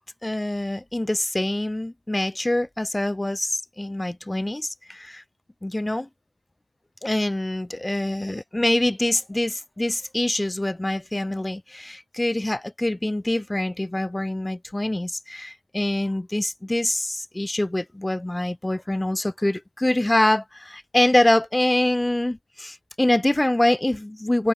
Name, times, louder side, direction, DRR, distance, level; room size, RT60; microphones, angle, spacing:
voice 1, 0.2-5.2 5.6-6.1 7.0-24.5, left 1 dB, 5° left, 1.2 m, -25 dB
open air
hypercardioid pair, 75°, 0 cm